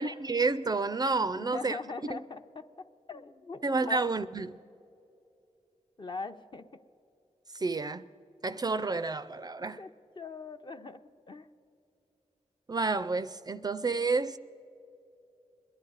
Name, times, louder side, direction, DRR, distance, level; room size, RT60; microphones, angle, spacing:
voice 1, 0.0-1.8 2.1-2.2 3.6-4.6 7.5-8.0 8.4-9.8 12.7-14.4, right 3 dB, 30° right, 0.4 m, -30 dB
voice 2, 1.3-2.7 3.1-4.0 6.0-6.8 9.8-9.9 10.2-11.0 11.3-11.5, left 4 dB, 40° left, 0.6 m, -41 dB
21.5 x 10.5 x 4.0 m
cardioid pair, 70°, 12 cm